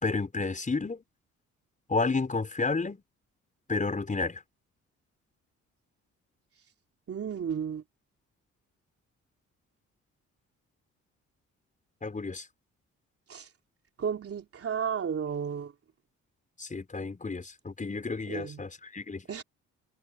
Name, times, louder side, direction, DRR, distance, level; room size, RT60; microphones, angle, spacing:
voice 1, 0.0-1.0 1.9-3.0 3.7-4.4 12.0-12.4 16.6-19.2, left 3 dB, 25° left, 6.1 m, -31 dB
voice 2, 7.1-7.8 13.3-13.5 14.0-15.7 18.3-18.6 19.3-19.4, right 7 dB, 50° right, 3.4 m, -33 dB
cardioid pair, 90°, 30 cm